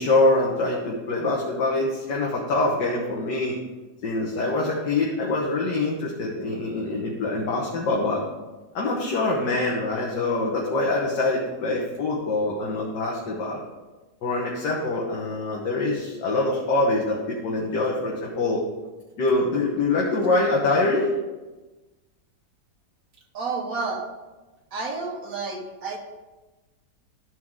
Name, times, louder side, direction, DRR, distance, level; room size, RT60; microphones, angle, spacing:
voice 1, 0.0-3.6 4.0-8.2 8.8-13.6 14.2-18.6 19.2-21.1, left 2 dB, 80° left, -3 dB, 1.8 m, -24 dB
voice 2, 23.3-24.1 24.7-26.0, right 4 dB, 55° right, 0 dB, 1.5 m, -30 dB
13.0 x 4.6 x 3.7 m, 1.2 s
omnidirectional pair, 1.9 m